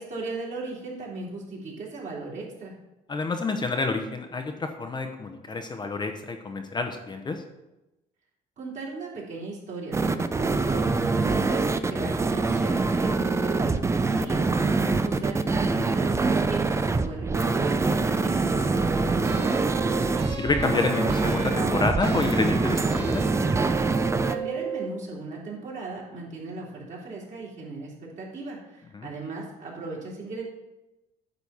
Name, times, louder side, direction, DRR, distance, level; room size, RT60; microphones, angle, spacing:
voice 1, 0.0-2.7 8.6-19.8 24.3-30.4, right 3 dB, 45° right, -4 dB, 3.4 m, -37 dB
voice 2, 3.1-7.4 11.9-12.1 14.7-15.0 20.3-23.2 28.9-29.1, left 3 dB, 25° left, 5 dB, 0.8 m, -29 dB
sound 1, 9.9-24.4, right 3 dB, 15° right, 0.4 m, -24 dB
sound 2, 19.2-25.0, right 6 dB, 80° right, 1.6 m, -36 dB
9.3 x 4.1 x 7.0 m, 0.99 s
cardioid pair, 110°, 17 cm